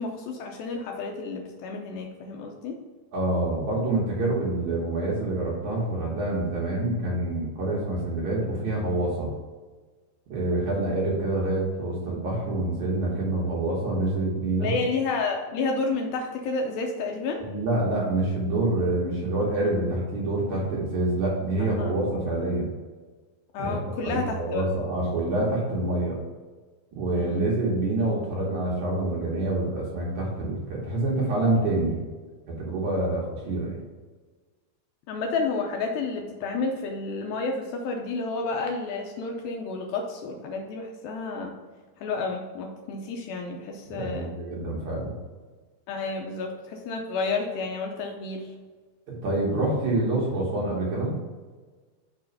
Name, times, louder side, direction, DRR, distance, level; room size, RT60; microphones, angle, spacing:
voice 1, 0.0-2.8 14.6-17.4 21.8-22.0 23.5-24.7 27.1-27.4 35.1-41.6 42.0-44.3 45.9-48.5, left 3 dB, 75° left, 2 dB, 2.3 m, -30 dB
voice 2, 3.1-9.3 10.3-14.7 17.4-22.7 23.6-23.9 24.3-26.2 26.9-32.0 32.5-33.8 43.9-45.2 49.1-51.1, right 2 dB, 60° right, -4 dB, 2.1 m, -26 dB
5.8 x 4.5 x 5.4 m, 1.4 s
omnidirectional pair, 4.6 m